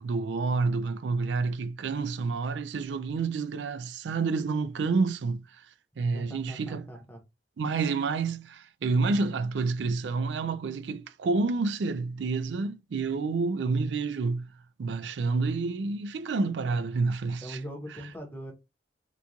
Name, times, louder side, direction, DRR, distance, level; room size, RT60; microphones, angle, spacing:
voice 1, 0.0-5.5 6.0-6.9 7.6-14.5 14.8-17.6, right 4 dB, 85° right, 0.4 m, -29 dB
voice 2, 6.1-7.2 17.4-18.5, equal, 10° left, 0.8 m, -41 dB
3.0 x 2.3 x 3.8 m
head